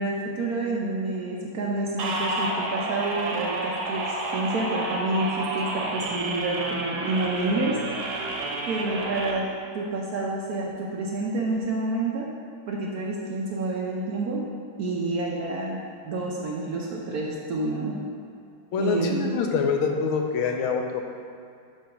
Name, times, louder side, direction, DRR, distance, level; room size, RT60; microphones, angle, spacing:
voice 1, 0.0-7.7 8.7-9.4 9.7-12.2 12.7-14.4 14.8-17.9 18.8-19.3, right 2 dB, 65° right, -3 dB, 1.0 m, -28 dB
sound 1, 2.0-9.3, right 2 dB, 85° right, 1.7 m, -30 dB
voice 2, 18.7-21.0, left 5 dB, 85° left, 3 dB, 1.5 m, -25 dB
7.7 x 3.5 x 5.7 m, 2.4 s
omnidirectional pair, 2.2 m